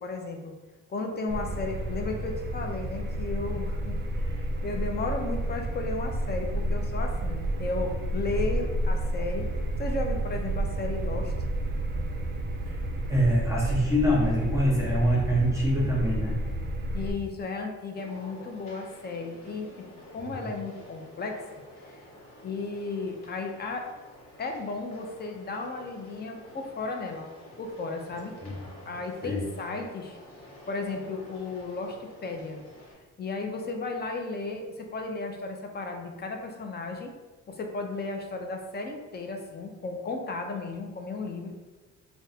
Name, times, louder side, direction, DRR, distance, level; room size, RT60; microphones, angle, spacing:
voice 1, 0.0-0.5 0.9-9.5 9.8-11.3 16.9-19.7 20.1-21.4 21.9-22.0 22.4-23.9 24.4-27.3 27.6-28.3 28.9-30.2 30.7-32.6 33.2-37.1 37.5-41.5, left 3 dB, 35° left, 3 dB, 0.5 m, -34 dB
sound 1, 1.3-17.1, right 1 dB, 35° right, 0.4 m, -30 dB
voice 2, 13.1-16.3 20.2-20.4 28.4-28.6 29.2-29.4, equal, 10° right, -4 dB, 0.8 m, -25 dB
sound 2, 17.9-32.9, equal, 55° left, 1.3 m, -49 dB
2.5 x 2.2 x 4.0 m, 1.2 s
cardioid pair, 90°, 30 cm